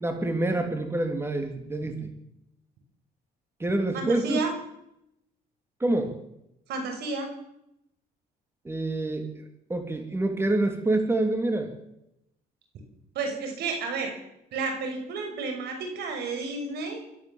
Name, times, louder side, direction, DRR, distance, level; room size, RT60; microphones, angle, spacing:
voice 1, 0.0-2.1 3.6-4.4 5.8-6.2 8.6-11.7, right 2 dB, 15° right, 6 dB, 2.9 m, -27 dB
voice 2, 3.9-4.5 6.7-7.3 13.1-14.1 14.5-17.0, right 4 dB, 75° right, 5 dB, 6.3 m, -31 dB
25.5 x 14.0 x 7.3 m, 0.83 s
cardioid pair, 110°, 17 cm